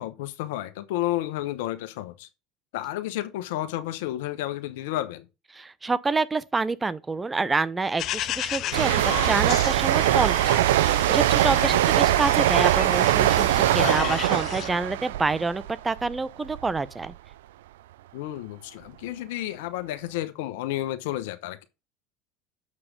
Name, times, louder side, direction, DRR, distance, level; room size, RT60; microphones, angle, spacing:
voice 1, 0.0-2.3 2.7-5.3 11.6-11.8 13.8-14.1 18.1-21.6, left 14 dB, 75° left, 0.9 m, -31 dB
voice 2, 5.5-17.1, right 3 dB, 20° right, 0.7 m, -27 dB
sound 1, 8.0-14.7, left 12 dB, 50° left, 0.5 m, -34 dB
sound 2, 8.7-16.2 16.5-16.8, right 14 dB, 80° right, 0.3 m, -22 dB
7.3 x 4.9 x 5.1 m
hypercardioid pair, 85°, 0 cm